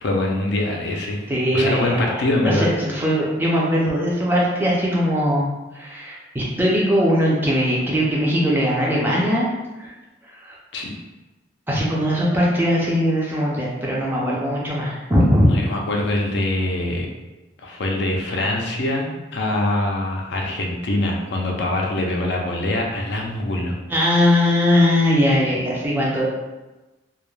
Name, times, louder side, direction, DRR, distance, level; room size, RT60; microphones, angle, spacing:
voice 1, 0.0-1.2 1.5-2.7 10.7-10.9 15.5-17.1 17.6-23.8, left 1 dB, 60° left, 0 dB, 0.4 m, -23 dB
voice 2, 1.3-5.5 5.7-9.5 9.8-9.9 10.4-10.5 11.7-15.5 23.9-26.3, equal, 10° right, -5 dB, 0.4 m, -20 dB
2.3 x 2.1 x 3.1 m, 1.1 s
head